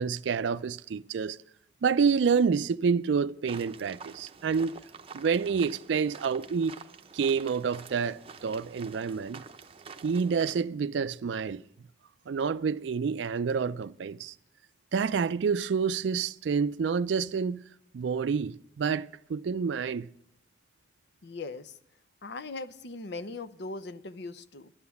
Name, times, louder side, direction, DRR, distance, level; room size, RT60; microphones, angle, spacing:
voice 1, 0.0-1.4 1.8-4.8 5.1-6.8 7.1-9.4 10.0-11.6 12.3-14.3 14.9-17.6 17.9-20.1, right 6 dB, 75° right, 0.4 m, -28 dB
sound 1, 3.5-10.6, right 5 dB, 30° right, 0.7 m, -48 dB
voice 2, 21.2-21.7 22.2-24.7, left 3 dB, 65° left, 0.7 m, -39 dB
11.5 x 8.8 x 7.0 m
head